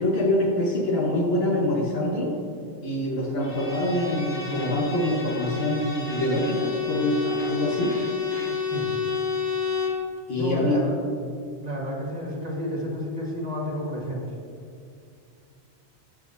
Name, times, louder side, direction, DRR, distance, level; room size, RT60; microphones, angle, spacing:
voice 1, 0.0-2.3 2.8-8.0 10.3-10.8, left 1 dB, 60° left, -2 dB, 1.7 m, -25 dB
Bowed string instrument, 3.4-10.1, left 5 dB, 25° left, 1.2 m, -30 dB
voice 2, 10.3-11.0 11.6-14.2, left 1 dB, 35° right, -4 dB, 1.8 m, -31 dB
15.0 x 5.7 x 2.8 m, 2.3 s
omnidirectional pair, 1.2 m